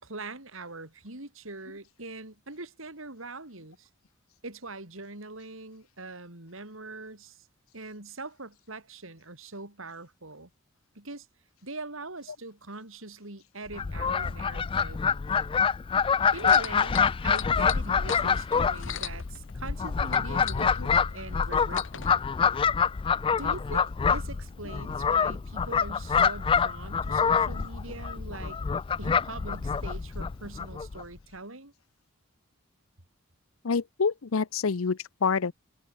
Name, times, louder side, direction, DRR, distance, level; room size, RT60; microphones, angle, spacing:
voice 1, 0.0-3.9 4.4-7.5 7.7-10.5 10.9-11.3 11.6-15.0 16.3-22.2 23.3-28.6 29.0-31.7, right 2 dB, 75° right, 4.6 m, -42 dB
Fowl, 13.7-31.0, left 6 dB, 25° left, 0.3 m, -26 dB
sound 1, 16.4-19.8 20.1-22.1 22.9-23.0, left 9 dB, 65° left, 1.6 m, -38 dB
voice 2, 33.6-35.5, left 5 dB, 85° left, 0.7 m, -27 dB
head